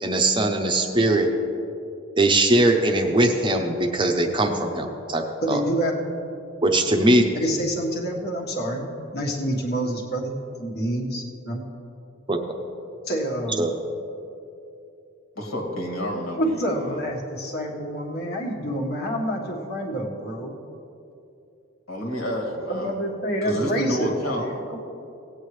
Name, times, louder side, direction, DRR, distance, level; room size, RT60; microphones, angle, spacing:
voice 1, 0.0-1.3 2.2-5.6 6.6-7.2 12.3-12.4 13.6-13.8, right 1 dB, 25° right, 3 dB, 0.7 m, -21 dB
voice 2, 5.4-6.1 7.3-8.9 9.1-11.6 13.0-13.8 16.4-20.5 22.7-24.8, right 1 dB, 50° left, 0 dB, 1.5 m, -27 dB
voice 3, 15.4-17.0 21.9-22.9 23.4-24.5, equal, 80° left, 0 dB, 2.2 m, -29 dB
17.5 x 8.8 x 3.2 m, 2.7 s
head